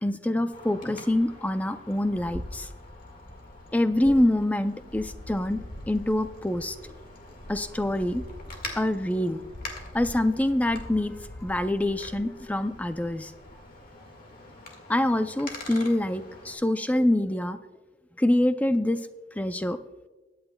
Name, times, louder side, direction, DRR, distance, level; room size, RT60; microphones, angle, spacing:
voice 1, 0.0-2.7 3.7-5.6 5.9-6.8 7.5-8.2 8.8-9.4 9.9-13.3 14.9-17.6 18.2-19.0 19.4-19.8, left 1 dB, 10° left, 10 dB, 0.4 m, -25 dB
Wind, 0.5-16.5, left 2 dB, 50° left, 1.7 m, -43 dB
21.5 x 8.8 x 2.2 m, 1.2 s
head